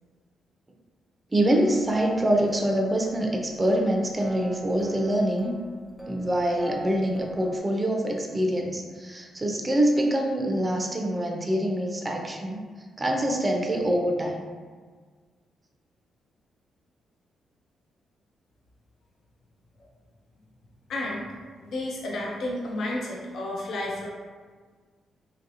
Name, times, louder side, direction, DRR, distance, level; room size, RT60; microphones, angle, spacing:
voice 1, 1.3-5.5 6.1-12.6 13.0-14.4, right 1 dB, 25° right, 1 dB, 0.4 m, -25 dB
sound 1, 1.4-7.6, right 1 dB, 15° left, 0.7 m, -41 dB
voice 2, 20.9-21.3 21.6-24.1, left 1 dB, 70° left, -2 dB, 0.5 m, -31 dB
3.1 x 2.7 x 2.5 m, 1.5 s
cardioid pair, 70°, 0 cm